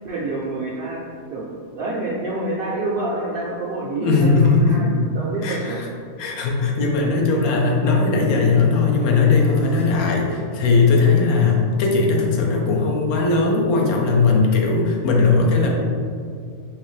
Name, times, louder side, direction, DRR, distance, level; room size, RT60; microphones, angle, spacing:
voice 1, 0.0-1.0 1.3-1.5 1.8-5.8, right 2 dB, 80° right, -5 dB, 0.5 m, -27 dB
voice 2, 4.0-4.9 5.4-5.9 6.2-15.7, left 4 dB, 90° left, 0 dB, 1.1 m, -18 dB
sound 1, 8.6-12.6, right 1 dB, 5° left, 0.4 m, -39 dB
3.7 x 2.7 x 3.1 m, 2.2 s
omnidirectional pair, 1.5 m